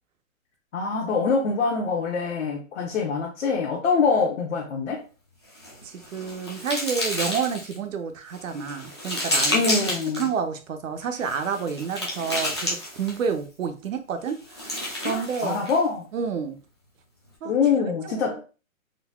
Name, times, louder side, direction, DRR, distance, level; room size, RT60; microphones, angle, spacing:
voice 1, 0.7-5.0 9.5-10.3 15.0-16.0 17.4-18.4, left 5 dB, 55° left, -2 dB, 0.7 m, -24 dB
sound 1, 5.5-7.8 8.3-10.3 11.2-13.3 14.3-15.8, left 1 dB, 20° left, 0.4 m, -30 dB
voice 2, 5.8-9.6 10.1-15.6 16.1-16.6 17.4-17.5 18.0-18.4, right 6 dB, 65° right, 7 dB, 0.7 m, -29 dB
3.9 x 2.1 x 2.2 m, 0.34 s
hypercardioid pair, 150°, 42 cm